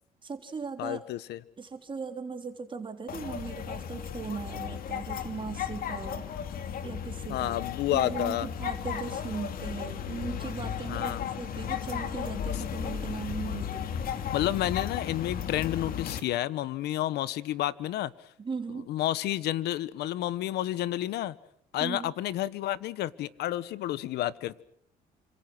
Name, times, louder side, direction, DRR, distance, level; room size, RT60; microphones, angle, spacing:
voice 1, 0.2-1.0 1.6-6.3 6.8-7.6 7.9-13.8 18.4-18.9 21.8-22.1, right 5 dB, 30° right, 6 dB, 3.4 m, -38 dB
voice 2, 0.8-1.4 7.3-8.5 10.9-11.3 14.3-18.1 18.9-21.3 21.7-24.6, left 13 dB, 75° left, 17 dB, 1.3 m, -30 dB
sound 1, 3.1-16.2, left 8 dB, 60° left, 2.8 m, -35 dB
29.0 x 26.5 x 6.2 m, 0.65 s
cardioid pair, 110°, 17 cm